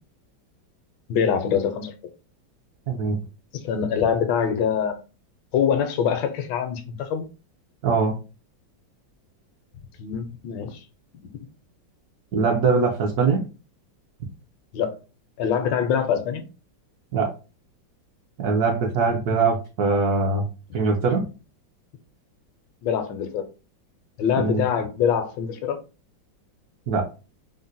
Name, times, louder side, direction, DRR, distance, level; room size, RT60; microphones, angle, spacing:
voice 1, 1.1-1.9 3.6-5.0 5.5-7.3 10.0-10.8 14.7-15.0 15.4-16.5 19.3-19.4 22.8-23.5 24.2-25.8, left 7 dB, 80° left, 1.3 m, -24 dB
voice 2, 2.9-3.2 7.8-8.2 12.3-13.4 17.1-17.3 18.4-20.5 20.7-21.3 24.4-24.6 26.9-27.1, right 4 dB, 75° right, 0.9 m, -22 dB
3.8 x 2.1 x 2.5 m
omnidirectional pair, 2.1 m